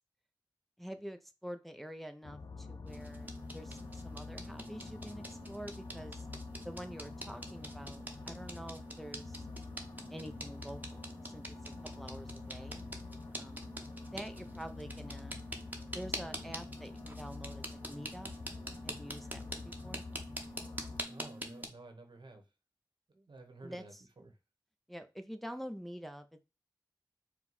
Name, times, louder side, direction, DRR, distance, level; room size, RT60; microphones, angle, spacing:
voice 1, 0.8-6.3 6.6-9.5 10.1-11.0 11.3-12.8 13.3-13.6 14.1-15.4 15.9-18.3 18.8-20.1 23.6-24.0 24.9-26.4, equal, ahead, 0.5 m, -47 dB
sound 1, 2.2-21.0, left 4 dB, 60° left, 0.4 m, -48 dB
sound 2, 2.9-21.7, right 1 dB, 20° right, 0.9 m, -45 dB
voice 2, 21.0-22.4 23.1-24.4, right 2 dB, 80° right, 1.0 m, -53 dB
4.5 x 2.2 x 4.0 m
wide cardioid pair, 45°, 8 cm